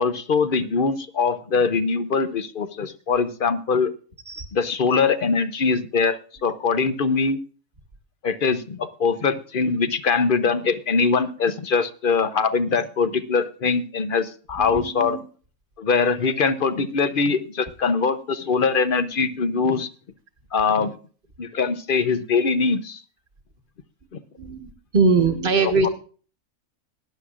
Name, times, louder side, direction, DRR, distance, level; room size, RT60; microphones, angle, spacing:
voice 1, 0.0-3.9 4.5-7.4 8.2-15.2 15.8-19.9 20.5-20.9 21.4-23.0 24.1-24.2 25.8-25.9, left 5 dB, 45° left, 12 dB, 0.8 m, -22 dB
voice 2, 14.6-15.2 24.4-25.9, right 4 dB, 40° right, 8 dB, 1.5 m, -22 dB
19.5 x 11.0 x 2.4 m, 0.39 s
omnidirectional pair, 1.4 m